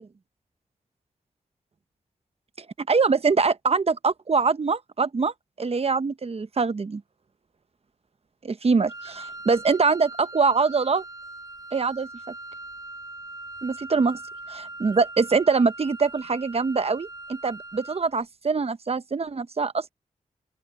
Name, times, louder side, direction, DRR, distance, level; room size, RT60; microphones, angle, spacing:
voice 1, 2.8-5.3 5.6-7.0 8.4-11.0 11.7-12.1 13.6-14.2 14.5-19.9, right 4 dB, 45° right, 1.0 m, -23 dB
Wind instrument woodwind instrument, 8.9-18.1, right 2 dB, 25° right, 5.1 m, -41 dB
open air
cardioid pair, 55°, 14 cm